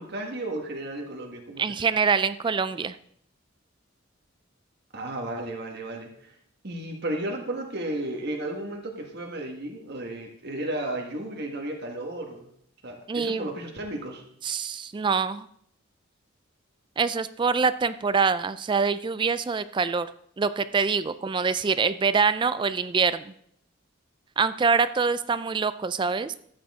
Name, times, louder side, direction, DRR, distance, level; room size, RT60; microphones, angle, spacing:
voice 1, 0.0-1.7 4.9-6.3 6.6-12.4 12.8-14.2, right 1 dB, 55° right, 1 dB, 1.5 m, -33 dB
voice 2, 1.6-3.0 13.1-13.5 14.4-15.5 17.0-20.1 20.4-23.3 24.4-26.4, right 5 dB, 25° right, 14 dB, 0.3 m, -25 dB
13.5 x 8.7 x 3.6 m, 0.69 s
head